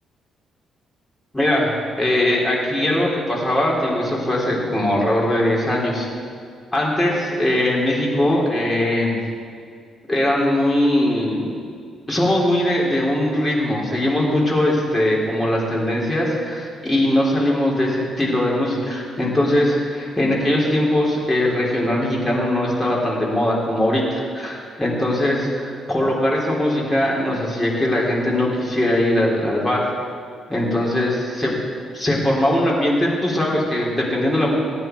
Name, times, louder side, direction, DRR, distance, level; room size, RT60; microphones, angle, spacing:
voice 1, 1.3-6.1 6.7-9.2 10.1-11.6 12.1-29.9 30.5-31.5 31.9-34.5, left 1 dB, 15° left, -4 dB, 3.6 m, -20 dB
17.5 x 9.6 x 4.6 m, 2.2 s
cardioid pair, 90°, 0 cm